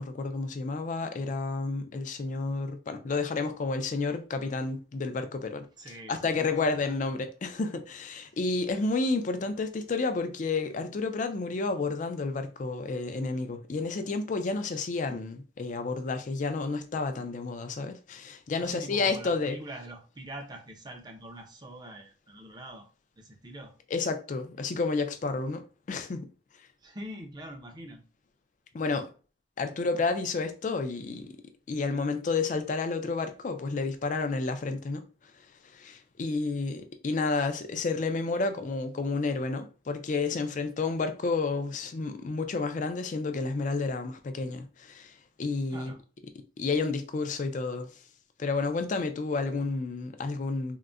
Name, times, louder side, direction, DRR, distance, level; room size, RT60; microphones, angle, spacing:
voice 1, 0.0-5.7 6.1-19.6 23.9-25.6 25.9-26.3 28.7-29.1 29.6-31.3 31.7-35.0 35.7-45.1 45.4-45.9 46.6-47.9 48.4-50.8, left 3 dB, 45° left, 0.4 m, -30 dB
voice 2, 5.8-6.9 18.6-22.9 23.2-23.7 26.8-28.0 45.7-46.0, right 1 dB, 25° right, 0.5 m, -44 dB
3.7 x 2.1 x 2.3 m
head